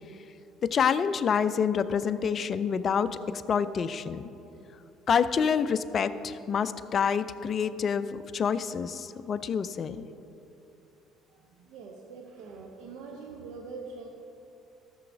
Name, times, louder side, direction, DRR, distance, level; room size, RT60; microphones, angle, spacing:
voice 1, 0.7-4.2 5.1-10.1, left 7 dB, 50° left, 13 dB, 0.4 m, -27 dB
voice 2, 11.3-14.1, right 4 dB, 75° right, 2 dB, 0.6 m, -44 dB
13.5 x 7.0 x 2.6 m, 3.0 s
hypercardioid pair, 65°, 0 cm